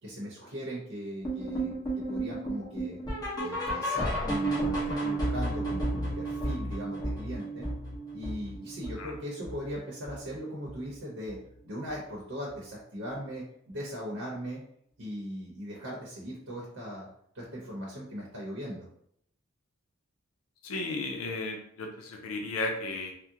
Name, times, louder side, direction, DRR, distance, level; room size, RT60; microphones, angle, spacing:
voice 1, 0.0-1.7 2.1-3.0 3.4-7.7 8.1-11.4 11.6-14.6 15.0-17.1 17.3-18.9, equal, 65° right, -4 dB, 0.8 m, -39 dB
sound 1, 1.2-10.4 10.6-11.0 11.3-11.4 11.9-12.0 12.5-12.6, right 1 dB, 20° left, 1.0 m, -33 dB
voice 2, 20.6-23.1, left 2 dB, 80° left, 2 dB, 0.5 m, -34 dB
3.6 x 2.1 x 2.7 m, 0.69 s
head